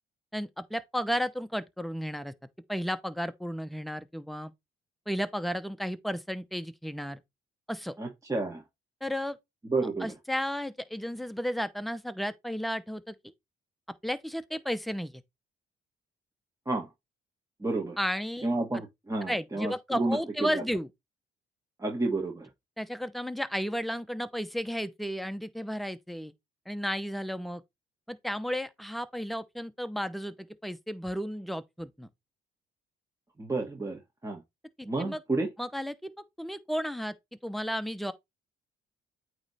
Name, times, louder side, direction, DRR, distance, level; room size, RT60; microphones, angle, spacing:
voice 1, 0.3-2.3 2.7-4.5 5.1-7.2 7.7-7.9 9.0-9.4 10.0-13.2 14.0-15.2 18.0-18.5 19.3-20.9 22.8-26.3 26.7-27.6 28.1-32.1 34.8-35.2 35.6-36.1 36.4-37.1 37.4-38.1, equal, ahead, 0.8 m, -33 dB
voice 2, 8.0-8.6 9.6-10.1 16.6-16.9 17.6-18.0 18.4-20.6 21.8-22.5 33.4-34.4 34.8-35.5, right 2 dB, 15° right, 1.6 m, -31 dB
8.7 x 3.2 x 4.2 m
cardioid pair, 90°, 20 cm